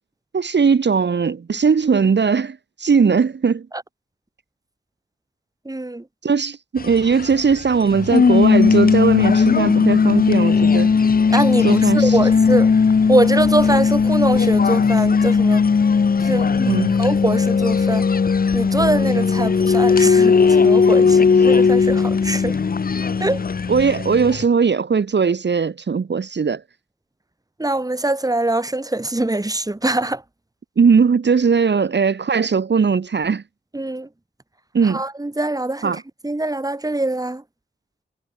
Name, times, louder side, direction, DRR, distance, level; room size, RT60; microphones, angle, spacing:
voice 1, 0.3-3.7 6.2-10.9 11.6-12.2 16.7-16.9 23.7-26.6 30.8-33.4 34.7-35.0 35.8-36.0, right 5 dB, 70° right, 0.8 m, -19 dB
voice 2, 5.6-6.0 11.3-12.7 13.1-15.6 16.2-16.5 17.0-18.0 18.5-22.6 23.2-23.4 27.6-30.2 33.7-34.1 34.8-37.4, right 2 dB, 20° right, 1.4 m, -23 dB
sound 1, 6.8-24.5, left 5 dB, 50° left, 0.6 m, -17 dB
wide cardioid pair, 70°, 19 cm